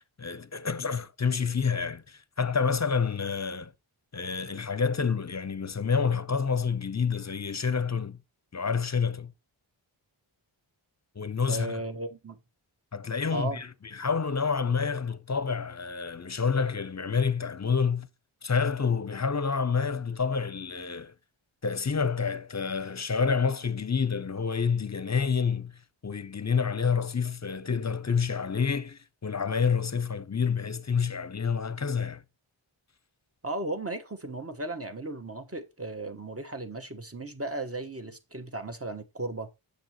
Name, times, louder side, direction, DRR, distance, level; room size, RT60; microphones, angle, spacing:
voice 1, 0.2-3.7 4.1-8.2 8.5-9.3 11.2-11.8 12.9-13.7 13.9-18.1 18.4-21.1 21.6-32.2, left 5 dB, 35° left, 0.7 m, -28 dB
voice 2, 11.5-12.4 13.2-13.6 33.4-39.5, right 2 dB, 30° right, 1.3 m, -35 dB
7.8 x 6.7 x 3.0 m
wide cardioid pair, 45°, 48 cm